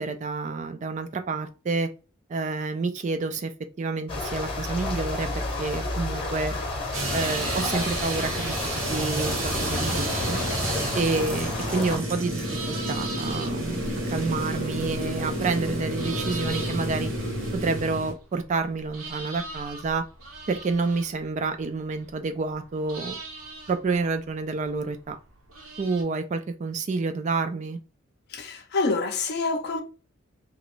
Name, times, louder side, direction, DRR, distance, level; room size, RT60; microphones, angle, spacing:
voice 1, 0.0-1.9 2.3-3.5 3.8-6.5 7.1-8.5 8.9-10.4 10.9-13.8 14.1-17.1 17.5-20.0 20.5-23.2 23.7-25.2 25.8-27.8, right 3 dB, 35° right, 0.3 m, -29 dB
sound 1, 4.1-12.0, left 2 dB, 25° left, 0.9 m, -31 dB
sound 2, 6.9-18.1, right 1 dB, 65° right, 1.1 m, -30 dB
sound 3, 7.1-26.0, right 3 dB, 85° right, 1.1 m, -42 dB
voice 2, 28.3-29.8, left 3 dB, 50° left, 0.6 m, -27 dB
3.0 x 2.5 x 3.0 m
head